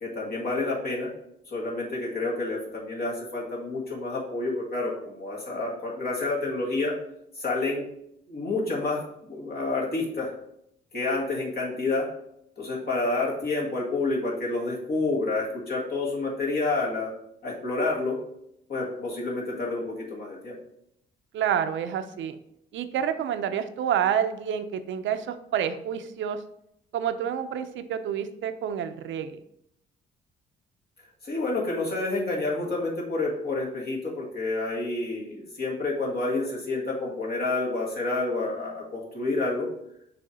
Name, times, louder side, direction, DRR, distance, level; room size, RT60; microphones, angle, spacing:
voice 1, 0.0-1.1 1.5-6.9 7.4-7.9 8.3-10.3 10.9-12.1 12.6-17.1 17.4-18.2 18.7-20.6 31.2-39.7, left 2 dB, 50° left, -3 dB, 1.8 m, -29 dB
voice 2, 21.3-22.4 22.7-26.4 26.9-29.4, right 9 dB, 70° right, 9 dB, 0.6 m, -28 dB
6.8 x 3.2 x 5.0 m, 0.76 s
cardioid pair, 90°, 20 cm